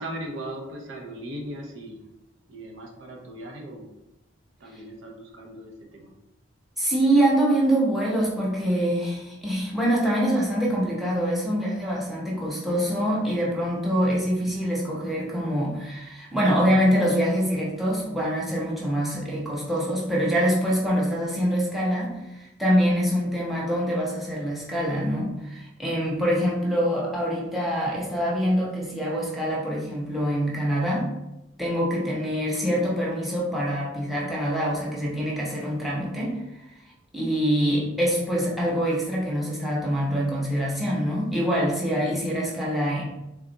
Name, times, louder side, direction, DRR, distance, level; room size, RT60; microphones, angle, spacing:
voice 1, 0.0-2.0 2.5-3.9 4.6-6.1, right 1 dB, 65° right, 1 dB, 0.6 m, -38 dB
voice 2, 6.8-31.1 31.6-36.4 37.1-43.0, equal, ahead, -4 dB, 0.7 m, -25 dB
3.4 x 2.4 x 3.9 m, 0.92 s
head